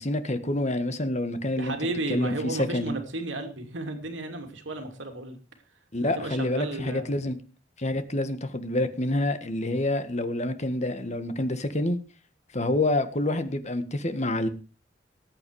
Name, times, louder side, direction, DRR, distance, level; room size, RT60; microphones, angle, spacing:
voice 1, 0.0-1.7 2.1-2.9 5.9-7.4 7.8-12.0 12.5-14.5, left 1 dB, 35° left, 1.6 m, -27 dB
voice 2, 1.6-5.4 6.0-7.1, right 2 dB, 75° right, 2.9 m, -33 dB
19.5 x 8.6 x 4.9 m
head